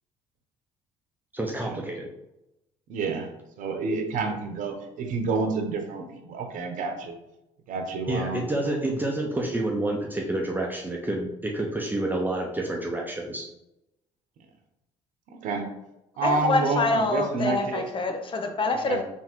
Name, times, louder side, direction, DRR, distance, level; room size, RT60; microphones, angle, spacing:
voice 1, 1.3-2.1 8.1-13.5, right 1 dB, 15° right, -1 dB, 0.8 m, -28 dB
voice 2, 2.9-3.3 3.6-7.1 7.7-8.5 15.3-15.7 16.2-17.9 18.9-19.0, right 4 dB, 65° right, 5 dB, 0.9 m, -29 dB
voice 3, 16.2-19.0, left 3 dB, 35° left, 5 dB, 0.8 m, -25 dB
3.7 x 2.9 x 4.5 m, 0.89 s
supercardioid pair, 65°, 14 cm